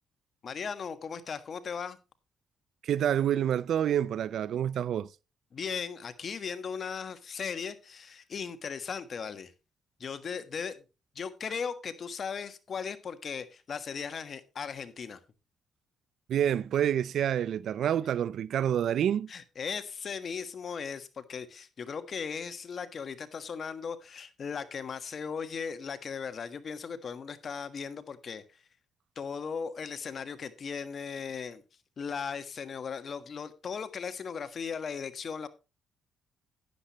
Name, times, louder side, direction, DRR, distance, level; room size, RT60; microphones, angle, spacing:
voice 1, 0.4-2.0 5.5-9.5 10.0-10.8 11.1-15.2 19.3-28.4 29.1-31.6 32.0-35.5, left 6 dB, 50° left, 1.4 m, -37 dB
voice 2, 2.8-5.1 16.3-19.3, right 10 dB, 70° right, 0.5 m, -28 dB
12.0 x 10.0 x 3.0 m
cardioid pair, 90°, 0 cm